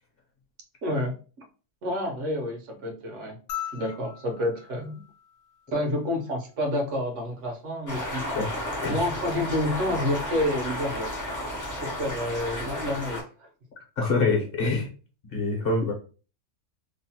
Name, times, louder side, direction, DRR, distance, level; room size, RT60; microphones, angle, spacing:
voice 1, 0.8-1.2 1.8-3.4 3.7-5.0 5.7-8.4 8.9-11.1 11.8-13.5, left 1 dB, 70° right, 2 dB, 1.0 m, -29 dB
sound 1, 3.5-6.1 7.7-7.8, left 11 dB, 90° left, 1.0 m, -40 dB
sound 2, 7.9-13.2, left 1 dB, 30° left, 0.3 m, -33 dB
voice 2, 14.0-14.9 15.3-15.9, left 3 dB, 55° left, 0 dB, 0.9 m, -25 dB
2.9 x 2.0 x 2.7 m, 0.36 s
omnidirectional pair, 1.3 m